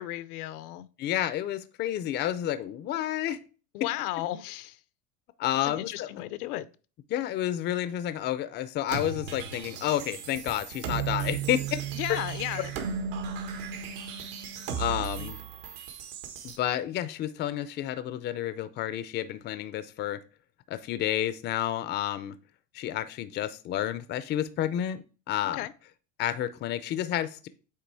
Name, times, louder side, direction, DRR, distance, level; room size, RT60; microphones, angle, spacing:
voice 1, 0.0-0.9 3.7-4.8 5.6-6.7 11.9-12.7 14.7-15.3 25.5-25.7, left 15 dB, 85° left, 0.7 m, -35 dB
voice 2, 1.0-3.4 5.4-6.1 7.1-11.8 14.8-15.4 16.4-20.2 20.7-22.4 22.7-25.7 26.2-27.5, left 12 dB, 25° left, 0.4 m, -30 dB
sound 1, 8.9-16.6, right 7 dB, 75° right, 1.6 m, -35 dB
8.3 x 3.0 x 4.5 m
supercardioid pair, 135°, 44 cm